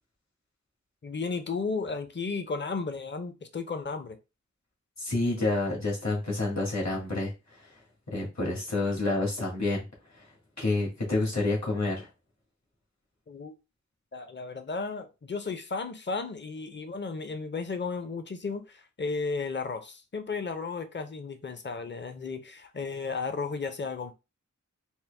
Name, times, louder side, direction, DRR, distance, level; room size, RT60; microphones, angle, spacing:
voice 1, 1.0-4.2 13.3-13.5 14.1-24.1, left 4 dB, 35° left, 0.6 m, -34 dB
voice 2, 5.0-7.3 8.1-9.8 10.2-10.3 10.6-12.1, left 2 dB, 60° left, 1.9 m, -28 dB
4.4 x 2.1 x 3.4 m
wide cardioid pair, 60°, 31 cm